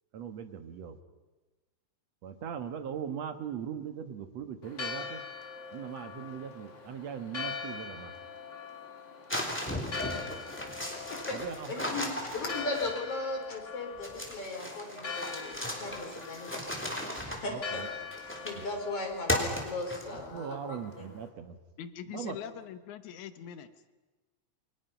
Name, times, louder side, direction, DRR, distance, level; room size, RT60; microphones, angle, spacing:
voice 1, 0.1-1.0 2.2-5.2 5.7-8.1 11.3-12.0 17.5-17.9 18.6-18.7 20.1-21.6 22.1-22.5, right 8 dB, 65° right, 8 dB, 2.5 m, -40 dB
Church bell, 4.6-21.3, left 5 dB, 25° left, 2.0 m, -43 dB
sound 1, 9.3-13.2 14.0-18.7 19.3-20.3, left 1 dB, 5° left, 3.2 m, -36 dB
voice 2, 11.7-16.6 17.2-17.8 18.2-20.8, left 2 dB, 50° left, 1 dB, 5.4 m, -37 dB
voice 3, 21.8-23.7, left 9 dB, 75° left, 11 dB, 2.5 m, -42 dB
28.5 x 23.5 x 5.9 m, 1.2 s
omnidirectional pair, 3.5 m